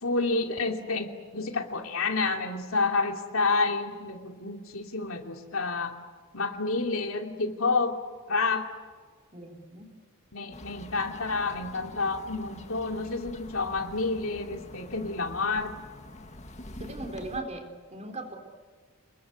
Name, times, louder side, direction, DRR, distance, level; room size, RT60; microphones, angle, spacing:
voice 1, 0.0-5.9 6.3-8.0 8.3-8.7 10.3-15.7, left 3 dB, 75° left, 4 dB, 2.7 m, -29 dB
voice 2, 9.3-9.9 16.8-18.4, right 2 dB, 30° right, 5 dB, 4.0 m, -38 dB
sound 1, 10.5-17.4, left 1 dB, 35° left, 1.9 m, -46 dB
29.5 x 21.0 x 8.2 m, 1.6 s
head